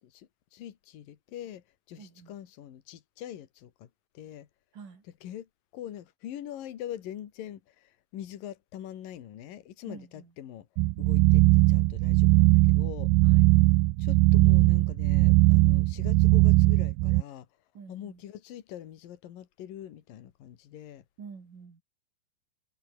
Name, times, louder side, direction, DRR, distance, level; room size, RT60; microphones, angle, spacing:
voice 1, 0.0-3.9 4.1-4.5 5.2-10.7 11.0-13.1 14.0-17.5 17.9-21.0, left 11 dB, 70° left, 3.5 m, -43 dB
voice 2, 2.0-2.3 4.7-5.0 9.9-10.3 13.2-13.5 17.7-18.2 21.2-21.8, right 5 dB, 60° right, 6.1 m, -47 dB
sound 1, 10.8-17.2, right 21 dB, 90° right, 2.5 m, -20 dB
omnidirectional pair, 4.2 m